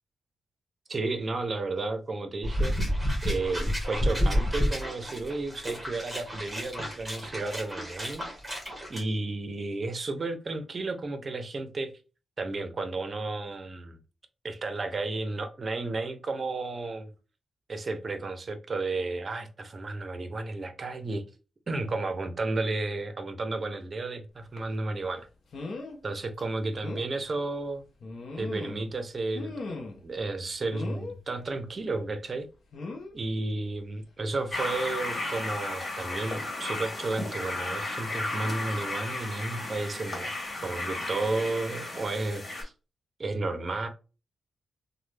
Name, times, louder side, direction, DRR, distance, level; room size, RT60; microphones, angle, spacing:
voice 1, 0.9-2.8 3.2-8.2 8.9-11.9 12.4-14.0 14.4-17.1 17.7-21.2 21.7-25.3 26.0-27.8 28.4-29.8 30.0-32.5 33.1-40.4 40.6-42.7 43.2-43.9, right 3 dB, 40° right, 0.6 m, -32 dB
sound 1, 2.4-9.0, equal, 5° right, 1.3 m, -30 dB
sound 2, 24.6-24.7 25.5-26.0 26.4-26.5 26.8-27.1 28.0-28.9 29.3-30.1 30.7-31.2 32.7-33.1 34.3-34.5 34.9-35.0, left 3 dB, 60° left, 0.6 m, -38 dB
sound 3, 34.5-42.6, left 2 dB, 35° left, 1.6 m, -34 dB
3.1 x 2.1 x 3.2 m
cardioid pair, 95°, 0 cm